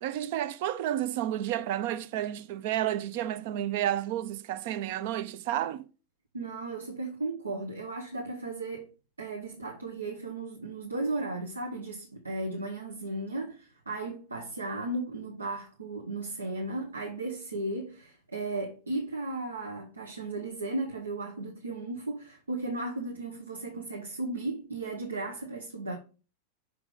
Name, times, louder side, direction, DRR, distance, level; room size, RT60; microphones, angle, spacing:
voice 1, 0.0-5.8, right 12 dB, 50° right, 0.6 m, -31 dB
voice 2, 6.3-8.9 9.2-26.0, right 2 dB, 75° right, 1.0 m, -35 dB
6.2 x 4.7 x 5.2 m
figure-of-eight pair, 90°, 0 cm